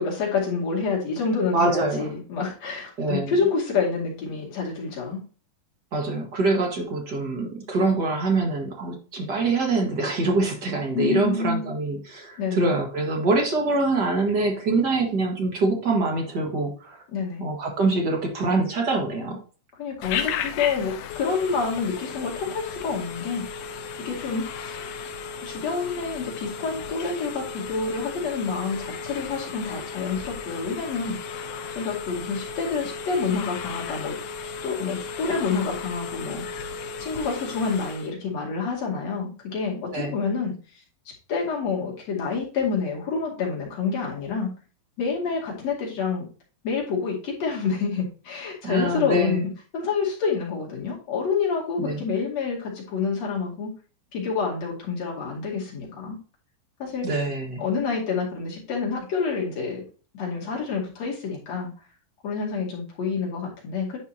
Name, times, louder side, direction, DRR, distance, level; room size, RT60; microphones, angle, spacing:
voice 1, 0.0-5.2 10.9-11.7 12.4-12.8 17.1-17.4 19.8-23.6 24.0-24.8 25.4-31.2 31.7-34.2 34.6-36.6 37.0-40.6 41.3-44.5 45.0-46.3 46.6-53.7 54.1-56.2 56.8-57.1 57.6-59.8 60.1-61.7 62.2-64.0, left 5 dB, 50° left, -3 dB, 3.2 m, -28 dB
voice 2, 1.5-2.1 3.0-3.3 5.9-17.0 17.4-19.4 39.9-40.1 48.6-49.5 51.8-52.0 57.0-57.6, right 2 dB, 50° right, 1 dB, 1.3 m, -24 dB
Telephone, 20.0-38.1, left 6 dB, 80° left, 2.5 m, -35 dB
10.5 x 5.4 x 2.8 m, 0.37 s
omnidirectional pair, 4.2 m